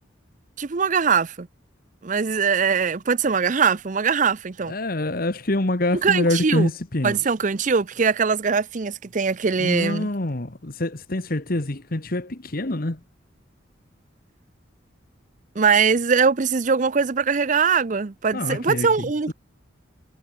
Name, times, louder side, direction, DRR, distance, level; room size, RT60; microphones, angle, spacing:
voice 1, 0.6-1.5 2.0-4.7 6.0-6.7 7.0-10.1 15.6-19.3, right 5 dB, 40° right, 0.6 m, -21 dB
voice 2, 4.7-7.2 9.6-13.0 18.3-19.3, left 1 dB, 50° left, 1.4 m, -26 dB
head